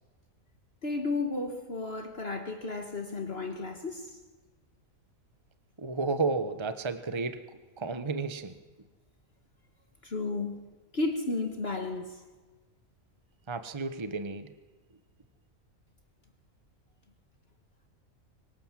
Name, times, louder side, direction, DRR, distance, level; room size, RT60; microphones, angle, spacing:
voice 1, 0.8-4.2 10.0-12.2, left 3 dB, 45° left, 1.9 m, -33 dB
voice 2, 5.8-8.5 13.5-14.5, right 4 dB, 20° right, 1.1 m, -32 dB
25.0 x 24.0 x 7.5 m
omnidirectional pair, 1.4 m